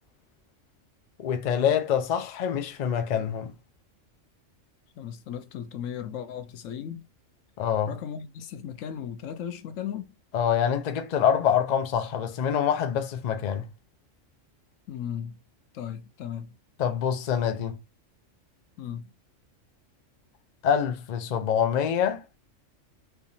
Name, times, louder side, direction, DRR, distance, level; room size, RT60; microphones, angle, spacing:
voice 1, 1.2-3.5 7.6-7.9 10.3-13.7 16.8-17.8 20.6-22.2, left 8 dB, 50° left, 0.5 m, -25 dB
voice 2, 5.0-7.0 7.9-10.2 14.9-15.4 15.7-16.6 18.8-19.1, left 9 dB, 85° left, 1.0 m, -36 dB
3.5 x 2.8 x 2.7 m
omnidirectional pair, 1.3 m